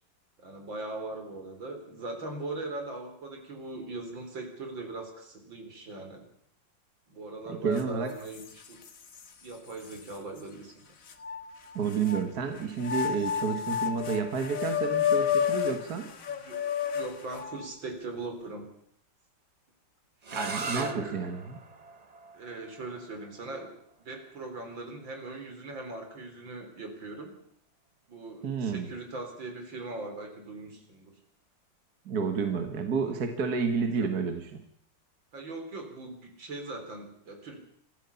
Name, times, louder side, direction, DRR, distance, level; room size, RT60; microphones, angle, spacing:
voice 1, 0.4-6.2 7.1-8.8 9.4-10.8 16.3-16.6 16.9-18.7 20.3-21.2 22.3-23.7 24.0-27.3 28.1-31.2 33.0-33.1 34.0-34.1 35.3-37.6, right 2 dB, 80° right, 5 dB, 4.7 m, -40 dB
voice 2, 7.5-8.1 11.8-16.1 20.3-21.6 28.4-28.9 32.1-34.6, right 5 dB, 55° right, 6 dB, 2.1 m, -30 dB
sound 1, 7.8-7.9 8.3-9.3 9.9-10.0 11.1-12.2 12.8-17.7, left 8 dB, 45° left, 1.8 m, -30 dB
sound 2, 20.2-25.9, right 4 dB, 30° right, 0.7 m, -41 dB
25.0 x 15.0 x 7.0 m, 0.66 s
omnidirectional pair, 2.0 m